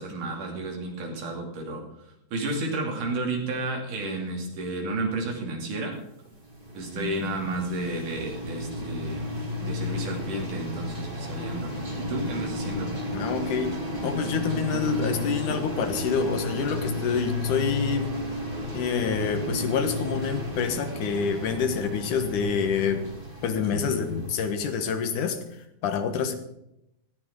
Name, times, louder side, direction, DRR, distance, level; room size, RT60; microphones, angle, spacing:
voice 1, 0.0-1.8 2.3-6.0 6.7-12.9, right 2 dB, 80° right, 1 dB, 4.5 m, -32 dB
sound 1, 6.3-25.3, left 1 dB, 20° right, 2.1 m, -33 dB
voice 2, 13.1-13.8 14.0-18.2 18.7-23.0 23.4-25.4 25.8-26.3, left 6 dB, 75° left, 7 dB, 2.9 m, -27 dB
17.5 x 14.5 x 3.9 m, 0.83 s
omnidirectional pair, 3.6 m